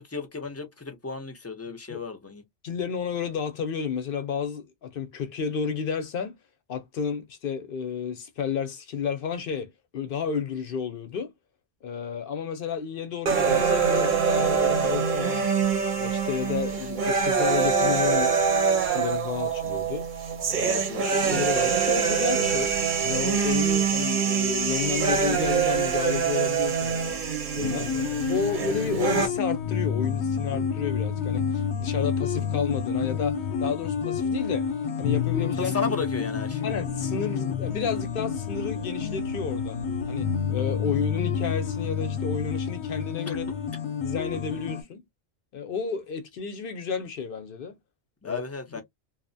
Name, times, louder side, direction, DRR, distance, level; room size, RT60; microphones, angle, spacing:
voice 1, 0.1-2.4 20.6-21.1 27.8-28.1 35.6-36.7 43.3-43.4 48.2-48.8, left 5 dB, 20° left, 0.4 m, -34 dB
voice 2, 2.6-6.4 6.7-11.3 11.8-15.5 15.9-18.4 18.7-20.1 20.5-20.8 21.3-22.7 23.0-27.3 27.5-27.9 28.3-34.7 35.0-35.7 36.6-39.8 40.1-43.5 44.0-45.0 45.5-47.8 48.2-48.4 48.7-48.8, left 6 dB, 60° left, 0.7 m, -31 dB
sound 1, 13.3-29.3, right 6 dB, 55° right, 0.7 m, -24 dB
sound 2, 27.6-44.8, left 6 dB, 85° left, 1.0 m, -29 dB
2.7 x 2.0 x 2.6 m
omnidirectional pair, 1.1 m